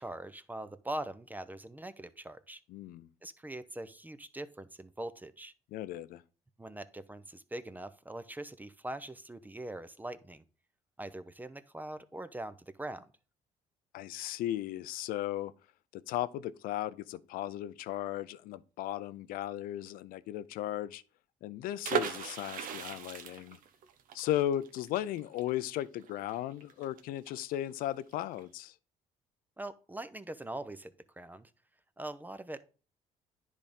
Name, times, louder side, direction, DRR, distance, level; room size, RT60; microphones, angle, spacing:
voice 1, 0.0-2.6 3.2-5.5 6.6-10.4 11.0-13.1 29.6-31.5 32.0-32.6, right 1 dB, 10° right, 0.7 m, -42 dB
voice 2, 2.7-3.1 5.7-6.2 13.9-15.5 15.9-21.0 21.4-23.6 24.1-28.7, left 13 dB, 80° left, 0.5 m, -36 dB
sound 1, 21.8-27.5 27.8-27.9 28.1-28.4, right 8 dB, 70° right, 1.0 m, -38 dB
10.0 x 3.5 x 5.3 m
cardioid pair, 80°, 15 cm